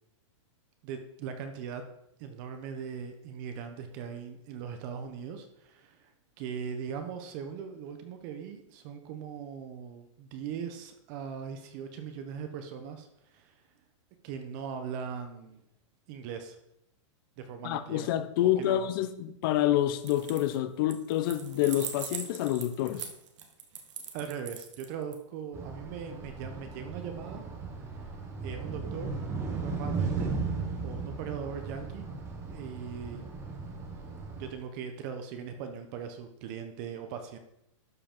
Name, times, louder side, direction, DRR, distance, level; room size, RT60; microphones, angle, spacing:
voice 1, 0.8-1.8 2.2-6.1 6.4-13.5 14.2-15.6 16.1-16.6 17.4-18.1 18.4-18.8 24.1-27.4 28.4-29.1 29.6-30.3 30.8-32.0 32.5-33.2 34.4-37.4, right 7 dB, 40° right, 0.9 m, -40 dB
voice 2, 17.6-23.1, left 12 dB, 45° left, 0.6 m, -28 dB
sound 1, 20.0-20.6 20.9-25.1, right 8 dB, 70° right, 1.5 m, -41 dB
sound 2, 25.5-34.5, right 4 dB, 15° right, 1.1 m, -36 dB
12.0 x 4.7 x 3.8 m
hypercardioid pair, 155°, 16 cm